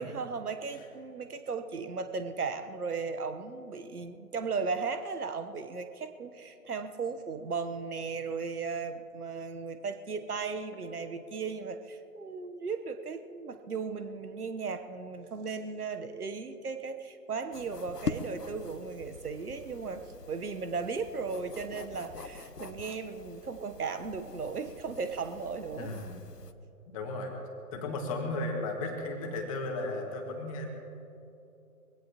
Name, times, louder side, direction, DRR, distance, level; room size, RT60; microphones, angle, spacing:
voice 1, 0.0-20.0 20.3-25.9, right 5 dB, 70° right, 9 dB, 1.2 m, -36 dB
sound 1, 17.5-26.5, left 4 dB, 90° left, 1.0 m, -43 dB
voice 2, 25.7-26.2 26.9-27.3 27.7-30.7, left 2 dB, 20° left, 2 dB, 1.8 m, -35 dB
23.0 x 16.5 x 3.0 m, 2.9 s
figure-of-eight pair, 145°, 47 cm